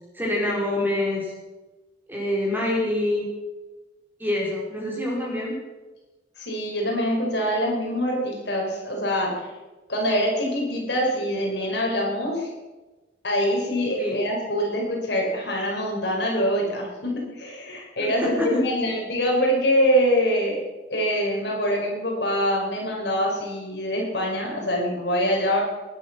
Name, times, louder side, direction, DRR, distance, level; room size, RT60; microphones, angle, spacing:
voice 1, 0.1-1.3 2.1-3.3 4.2-5.5 14.0-14.2 18.0-18.6, left 1 dB, 10° right, -3 dB, 4.8 m, -26 dB
voice 2, 6.4-9.3 9.9-12.5 13.2-20.6 20.9-25.6, equal, 65° left, -1 dB, 5.4 m, -24 dB
20.0 x 10.5 x 6.3 m, 1.2 s
head